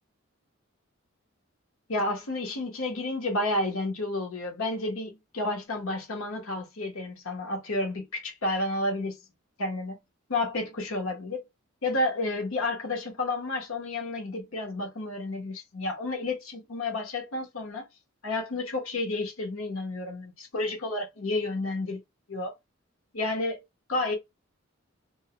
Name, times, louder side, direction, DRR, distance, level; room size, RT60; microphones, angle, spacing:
voice 1, 1.9-9.2 9.6-10.0 10.3-11.4 11.8-17.9 18.2-22.0 22.3-22.5 23.1-23.6 23.9-24.1, left 2 dB, 90° left, 1.0 m, -31 dB
2.6 x 2.1 x 2.7 m
head